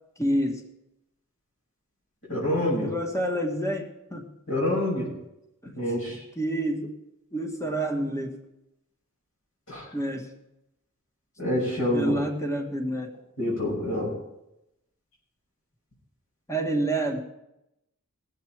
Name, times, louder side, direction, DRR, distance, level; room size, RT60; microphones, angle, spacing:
voice 1, 0.2-0.6 2.6-4.3 5.6-5.7 6.4-6.9 7.3-8.4 9.9-10.3 11.9-13.1 16.5-17.2, right 1 dB, 15° left, 2 dB, 1.3 m, -28 dB
voice 2, 2.3-2.9 4.5-5.1 5.7-6.2 9.7-9.9 11.4-12.1 13.4-14.1, left 1 dB, 65° left, -5 dB, 6.1 m, -26 dB
19.5 x 7.5 x 4.6 m, 0.87 s
head